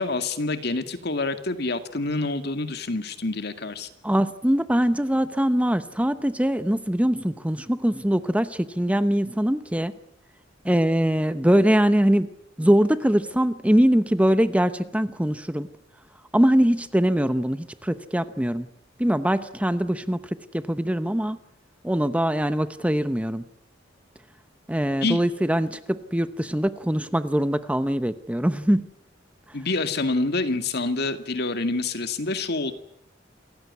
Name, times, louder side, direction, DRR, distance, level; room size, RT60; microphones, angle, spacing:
voice 1, 0.0-3.9 25.0-25.2 29.5-32.7, left 3 dB, 60° left, 8 dB, 2.2 m, -27 dB
voice 2, 4.0-9.9 10.6-12.3 12.6-15.7 16.3-18.7 19.0-21.4 21.8-23.4 24.7-28.9, equal, 5° right, 12 dB, 0.8 m, -22 dB
28.0 x 15.5 x 9.7 m, 0.80 s
head